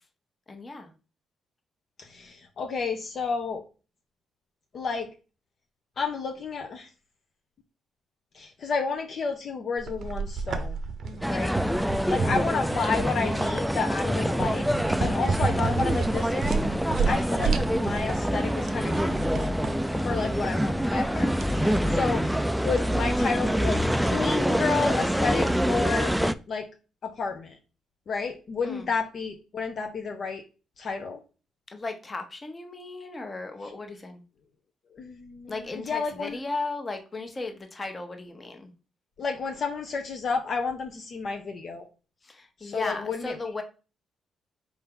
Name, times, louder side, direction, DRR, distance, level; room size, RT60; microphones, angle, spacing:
voice 1, 0.5-0.9 11.0-11.3 15.0-15.3 19.9-20.3 21.7-22.1 28.6-28.9 31.7-34.2 35.5-38.7 42.2-43.6, left 3 dB, 30° left, 1.0 m, -36 dB
voice 2, 2.0-3.7 4.7-5.1 6.0-6.9 8.3-10.8 11.3-11.6 12.1-14.6 15.0-16.4 17.0-19.6 20.0-26.7 27.0-27.6 28.1-30.4 30.8-31.2 34.9-36.4 39.2-41.9 42.6-43.4, left 5 dB, 55° left, 0.6 m, -31 dB
sound 1, 9.8-24.1, right 5 dB, 55° right, 0.6 m, -32 dB
sound 2, 11.2-26.3, equal, ahead, 0.3 m, -26 dB
4.6 x 2.7 x 3.6 m
cardioid pair, 90°, 0 cm